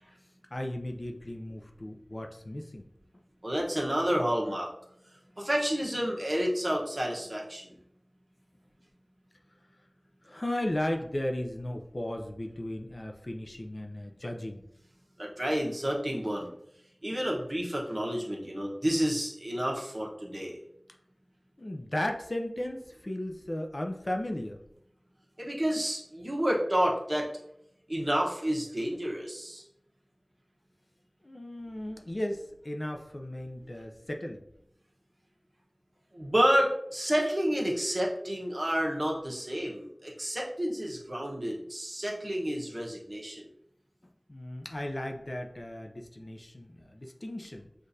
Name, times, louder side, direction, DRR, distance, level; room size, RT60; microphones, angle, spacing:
voice 1, 0.5-2.8 10.2-14.6 21.6-24.6 31.2-34.4 44.3-47.7, left 1 dB, 45° left, 3 dB, 0.5 m, -35 dB
voice 2, 3.4-4.7 5.4-7.8 15.2-16.5 17.0-20.6 25.4-27.3 27.9-29.6 36.1-43.5, equal, 40° right, -3 dB, 1.1 m, -30 dB
6.4 x 2.5 x 2.7 m, 0.77 s
wide cardioid pair, 40°, 0 cm